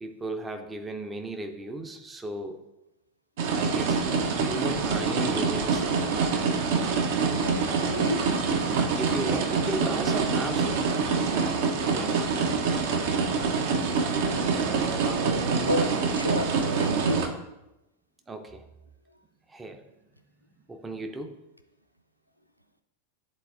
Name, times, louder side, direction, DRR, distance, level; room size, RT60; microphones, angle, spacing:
voice 1, 0.0-2.7 3.5-6.3 9.0-11.0 11.9-12.3 18.3-18.6 19.5-19.8 20.7-21.4, right 2 dB, 15° right, 0.6 m, -36 dB
sound 1, 3.4-17.3, right 4 dB, 50° right, 0.7 m, -26 dB
voice 2, 7.4-8.3 15.7-17.4, equal, 90° right, 0.3 m, -30 dB
10.5 x 4.0 x 2.5 m
figure-of-eight pair, 90°, 0 cm